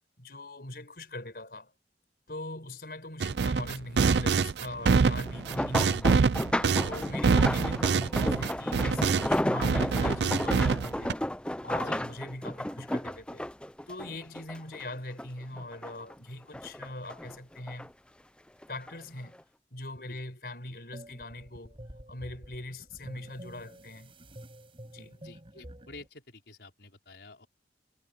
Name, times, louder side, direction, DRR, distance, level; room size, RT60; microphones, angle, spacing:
voice 1, 0.2-1.7 2.3-6.3 6.8-11.2 11.6-13.4 13.9-17.9 18.7-19.4 19.7-21.8 22.1-24.1 24.9-25.2, left 1 dB, 60° left, 5.7 m, -41 dB
sound 1, 3.2-9.4 9.6-11.1, right 5 dB, 75° right, 0.5 m, -25 dB
sound 2, 5.3-14.8 15.2-16.1 16.5-17.9 18.6-18.9 19.3-19.4, left 1 dB, 5° left, 0.5 m, -33 dB
sound 3, 20.9-26.1, equal, 30° right, 5.7 m, -49 dB
voice 2, 25.2-27.5, left 3 dB, 75° left, 4.6 m, -50 dB
head